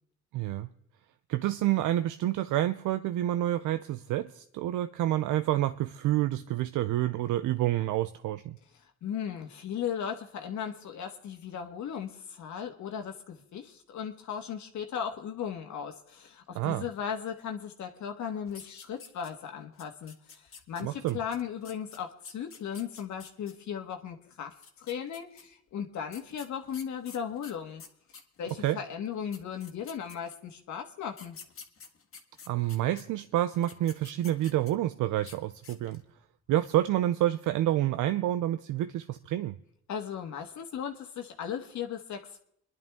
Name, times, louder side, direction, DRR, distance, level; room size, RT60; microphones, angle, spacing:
voice 1, 0.3-0.7 1.3-8.6 16.5-16.8 20.8-21.2 28.6-28.8 32.5-36.0 36.5-39.6, right 13 dB, 80° right, 11 dB, 0.5 m, -28 dB
voice 2, 9.0-27.8 28.4-31.4 39.9-42.4, left 8 dB, 70° left, 4 dB, 1.5 m, -37 dB
sound 1, 18.5-19.5 19.8-23.5 24.5-25.4 26.1-28.6 29.1-29.2 29.3-30.5 31.1-33.0 33.5-34.9 35.2-35.4 35.6-36.1, left 5 dB, 45° left, 1.7 m, -49 dB
29.5 x 11.0 x 3.6 m, 0.72 s
cardioid pair, 90°, 30 cm